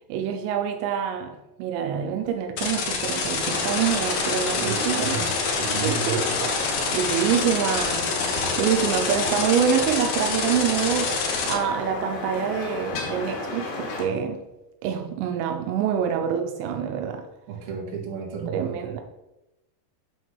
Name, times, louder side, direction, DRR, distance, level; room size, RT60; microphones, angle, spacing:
voice 1, 0.1-5.2 5.6-6.6 6.9-11.2 11.5-14.4 14.8-17.3 18.5-19.0, right 8 dB, 90° right, 2.9 m, -26 dB
sound 1, 2.6-11.5, left 4 dB, 65° left, 1.8 m, -27 dB
sound 2, 3.4-14.1, left 3 dB, 85° left, 4.0 m, -32 dB
voice 2, 4.5-5.3 5.6-6.3 17.5-18.7, right 6 dB, 65° right, 3.2 m, -32 dB
8.3 x 3.9 x 6.2 m
omnidirectional pair, 5.0 m